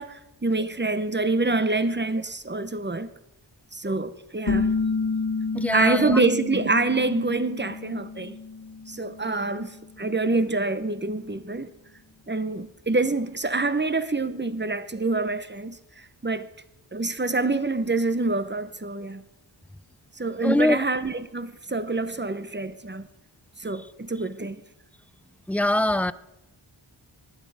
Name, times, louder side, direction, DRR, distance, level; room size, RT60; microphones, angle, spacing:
voice 1, 0.0-3.1 3.7-4.7 5.7-8.4 8.9-11.7 12.3-15.8 16.2-16.5 16.9-19.2 20.2-23.1 23.6-24.6, right 3 dB, 20° right, 0.9 m, -26 dB
sound 1, 4.5-9.9, left 4 dB, 40° left, 0.9 m, -30 dB
voice 2, 5.5-6.2 20.4-20.8 25.5-26.1, left 1 dB, 5° left, 0.4 m, -22 dB
19.0 x 11.5 x 4.9 m
wide cardioid pair, 50°, 48 cm